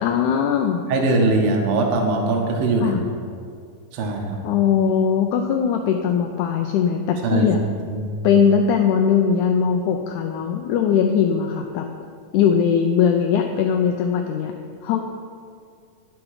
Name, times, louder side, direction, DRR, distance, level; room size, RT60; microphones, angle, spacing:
voice 1, 0.0-0.8 2.8-3.0 4.4-7.6 8.2-11.9 12.3-14.5 14.8-15.0, left 7 dB, 85° left, 4 dB, 1.7 m, -20 dB
voice 2, 0.9-3.0 3.9-4.4 7.2-7.5 7.9-8.1, right 2 dB, 85° right, 1 dB, 1.2 m, -21 dB
9.6 x 6.1 x 4.8 m, 2.2 s
omnidirectional pair, 3.9 m